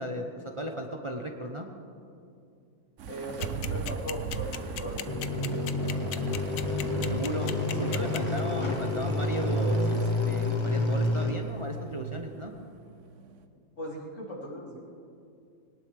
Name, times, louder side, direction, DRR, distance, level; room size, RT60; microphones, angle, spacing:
voice 1, 0.0-1.7 7.1-12.5, right 1 dB, 25° right, 2 dB, 0.9 m, -35 dB
sound 1, 3.0-13.4, right 6 dB, 70° right, 1.1 m, -40 dB
voice 2, 3.1-5.2 13.8-14.8, equal, 65° left, -4 dB, 3.4 m, -38 dB
sound 2, 3.4-8.4, left 11 dB, 90° left, 1.1 m, -36 dB
sound 3, 5.1-11.3, left 2 dB, 20° left, 1.4 m, -28 dB
22.0 x 18.5 x 3.5 m, 2.4 s
omnidirectional pair, 1.4 m